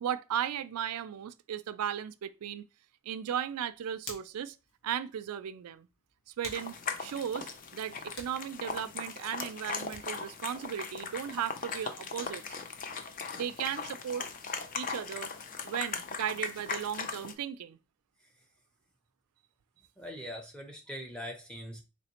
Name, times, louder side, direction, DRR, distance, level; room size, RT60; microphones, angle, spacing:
voice 1, 0.0-2.6 3.1-4.6 4.8-5.9 6.3-12.6 13.3-14.3 14.7-15.3 15.6-17.8, right 9 dB, 90° right, 0.3 m, -36 dB
Hands, 3.5-10.3, left 3 dB, 65° left, 1.2 m, -52 dB
sound 1, 6.5-17.3, left 5 dB, 35° left, 0.4 m, -39 dB
voice 2, 20.0-21.8, equal, 5° left, 0.7 m, -42 dB
4.1 x 3.1 x 2.9 m
head